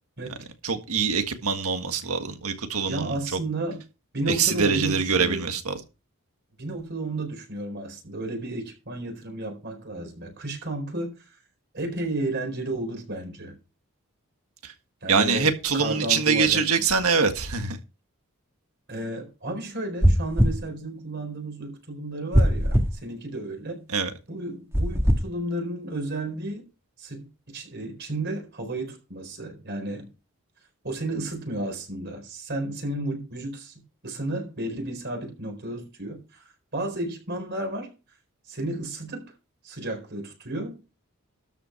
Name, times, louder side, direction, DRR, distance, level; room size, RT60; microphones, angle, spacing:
voice 1, 0.6-3.2 4.3-5.8 15.1-17.8 23.9-24.1, right 5 dB, 80° right, 1.6 m, -24 dB
voice 2, 2.8-3.8 4.1-5.5 6.6-11.1 11.7-13.5 15.0-16.6 18.9-23.8 24.3-26.7 27.0-27.3 27.5-30.1 30.8-33.7 34.0-38.0 38.5-39.3 39.6-40.8, right 1 dB, 50° right, 4.2 m, -32 dB
sound 1, 20.0-20.6 22.3-22.9 24.7-25.2, equal, 10° right, 1.5 m, -19 dB
12.5 x 5.5 x 5.7 m
head